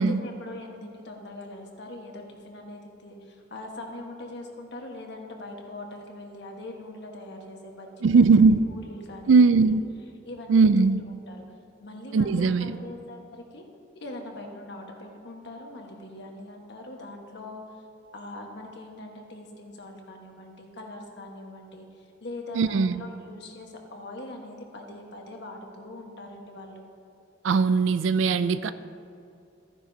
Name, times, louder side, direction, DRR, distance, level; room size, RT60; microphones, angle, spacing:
voice 1, 0.0-8.4 8.7-9.6 10.2-11.4 11.8-13.6 13.9-17.8 18.1-26.8, left 2 dB, 60° left, 1 dB, 1.4 m, -42 dB
voice 2, 8.0-8.6 9.3-9.8 10.5-11.0 12.1-12.8 22.5-23.0 27.4-28.7, right 4 dB, 75° right, 13 dB, 0.4 m, -19 dB
14.5 x 10.0 x 2.8 m, 2.6 s
head